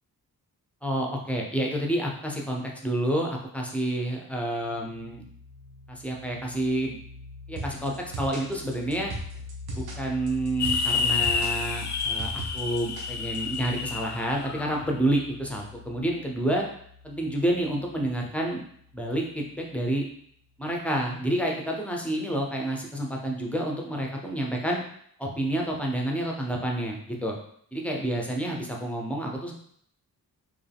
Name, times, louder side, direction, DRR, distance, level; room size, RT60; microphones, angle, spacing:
voice 1, 0.8-5.2 5.9-7.0 7.5-9.1 9.7-16.6 17.0-18.6 18.9-20.0 20.6-24.8 25.2-27.3 27.7-29.5, right 1 dB, 5° left, -1 dB, 0.7 m, -29 dB
sound 1, 4.6-20.0, left 4 dB, 20° right, 1.6 m, -44 dB
sound 2, 7.6-13.6, right 2 dB, 85° right, 1.0 m, -38 dB
sound 3, 10.6-14.8, left 5 dB, 50° left, 0.5 m, -29 dB
4.6 x 3.2 x 3.5 m, 0.66 s
wide cardioid pair, 160°, 36 cm